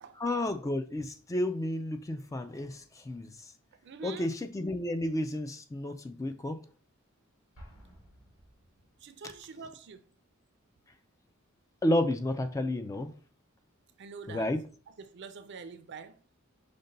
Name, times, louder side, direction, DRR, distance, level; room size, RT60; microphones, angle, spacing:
voice 1, 0.2-3.5 4.0-6.6 11.8-13.1 14.3-14.6, left 1 dB, 15° left, 0.3 m, -31 dB
voice 2, 3.8-4.3 9.0-10.0 14.0-14.5 14.9-16.2, right 5 dB, 55° right, 0.5 m, -45 dB
Explosion, 7.5-9.3, equal, 75° left, 1.7 m, -54 dB
5.2 x 2.2 x 3.9 m
head